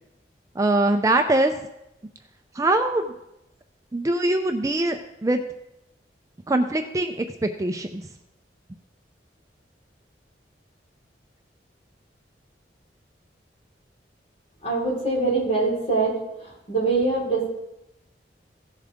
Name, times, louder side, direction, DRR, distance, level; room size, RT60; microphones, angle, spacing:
voice 1, 0.6-1.5 2.6-3.1 3.9-5.4 6.5-8.0, right 2 dB, 20° right, 6 dB, 0.4 m, -22 dB
voice 2, 14.6-16.2 16.7-17.5, right 3 dB, 35° left, -5 dB, 4.2 m, -23 dB
16.0 x 7.4 x 3.5 m, 0.88 s
head